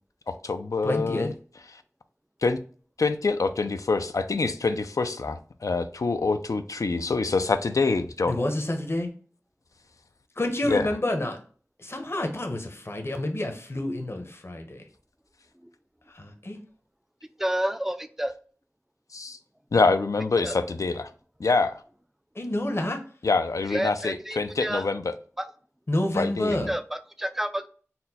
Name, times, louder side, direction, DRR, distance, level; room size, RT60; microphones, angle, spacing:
voice 1, 0.3-1.3 2.4-2.6 3.0-8.4 10.6-10.9 19.1-19.4 19.7-21.1 21.4-21.8 23.2-25.1 26.2-26.6, left 3 dB, 85° left, 9 dB, 0.4 m, -25 dB
voice 2, 0.8-1.3 8.3-9.1 10.4-11.4 11.8-14.8 16.1-16.6 22.4-23.0 25.9-26.7, left 1 dB, 50° left, 4 dB, 0.7 m, -28 dB
voice 3, 17.4-18.3 20.4-20.6 23.7-24.9 25.4-25.5 26.7-27.7, right 1 dB, 5° right, 10 dB, 0.3 m, -30 dB
4.2 x 2.1 x 4.0 m, 0.42 s
wide cardioid pair, 50°, 6 cm